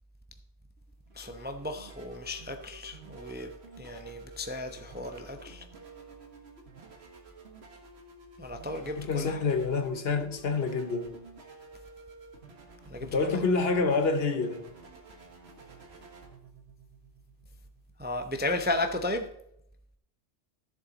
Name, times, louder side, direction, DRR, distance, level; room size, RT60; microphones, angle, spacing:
sound 1, 0.8-19.0, right 3 dB, 65° right, 1.8 m, -51 dB
voice 1, 1.1-3.5 3.8-5.6 8.4-9.4 12.9-13.4 18.0-19.3, left 2 dB, 10° right, 0.5 m, -34 dB
voice 2, 9.0-11.1 13.0-14.6, left 4 dB, 60° left, 1.2 m, -27 dB
14.0 x 7.3 x 3.9 m
omnidirectional pair, 1.2 m